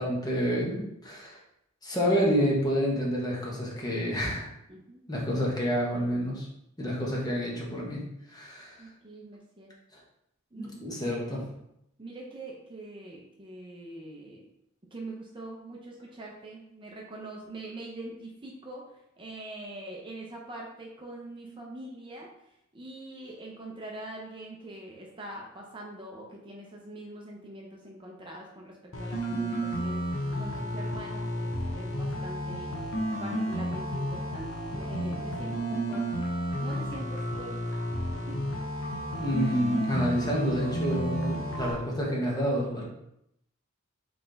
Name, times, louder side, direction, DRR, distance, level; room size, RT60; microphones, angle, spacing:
voice 1, 0.0-1.4 1.8-4.5 5.1-6.5 6.8-8.0 8.3-8.8 9.9-10.0 10.6-11.4 39.2-42.8, equal, 20° left, -3 dB, 1.1 m, -28 dB
voice 2, 4.7-5.0 8.8-9.7 10.5-11.5 12.0-14.5 14.9-22.3 22.7-30.0 30.4-32.8 33.2-37.8 38.3-38.4, right 1 dB, 25° right, -2 dB, 0.6 m, -43 dB
sound 1, 28.9-41.7, equal, 80° left, 0.9 m, -32 dB
4.1 x 3.3 x 3.9 m, 0.79 s
head